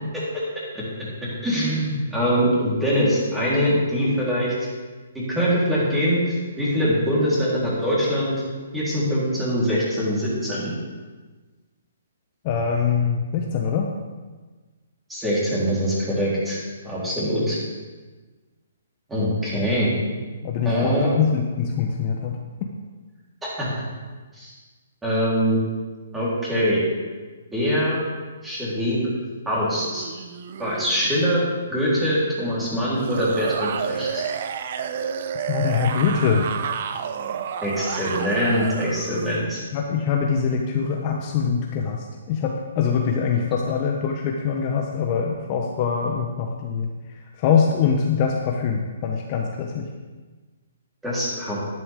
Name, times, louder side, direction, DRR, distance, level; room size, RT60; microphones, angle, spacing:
voice 1, 1.2-4.5 5.1-8.3 8.7-10.8 15.1-16.6 16.8-17.6 19.1-20.0 20.6-21.1 23.4-23.7 24.4-24.5 25.0-25.6 26.1-26.8 27.5-28.0 28.4-29.0 29.5-30.1 30.6-31.4 31.7-34.2 37.6-39.6 51.0-51.6, equal, 5° right, -8 dB, 3.9 m, -23 dB
voice 2, 12.4-13.9 20.4-22.7 35.4-36.5 39.7-46.9 47.4-49.9, left 6 dB, 35° left, 1 dB, 1.0 m, -23 dB
sound 1, 29.7-31.4 32.9-39.5, right 7 dB, 50° right, 0.7 m, -30 dB
11.0 x 10.5 x 3.7 m, 1.3 s
hypercardioid pair, 150°, 0 cm